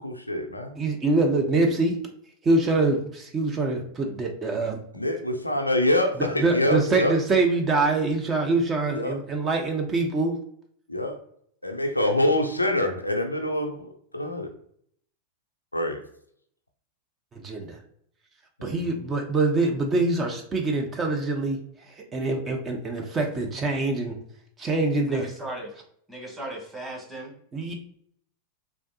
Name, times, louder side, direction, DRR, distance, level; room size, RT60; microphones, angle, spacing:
voice 1, 0.0-0.8 4.9-7.2 8.9-9.2 10.9-11.2 11.6-13.9 14.1-14.5 15.7-16.0 18.6-18.9, left 1 dB, 85° left, 4 dB, 0.4 m, -25 dB
voice 2, 0.8-2.0 2.4-4.8 6.2-10.4 17.3-17.8 18.6-21.6 22.1-24.2 24.6-25.3 27.5-27.7, right 3 dB, 20° right, 2 dB, 0.5 m, -24 dB
voice 3, 25.1-25.7 26.1-27.3, right 1 dB, 5° right, -3 dB, 1.1 m, -37 dB
3.4 x 2.6 x 2.6 m, 0.66 s
figure-of-eight pair, 90°, 0 cm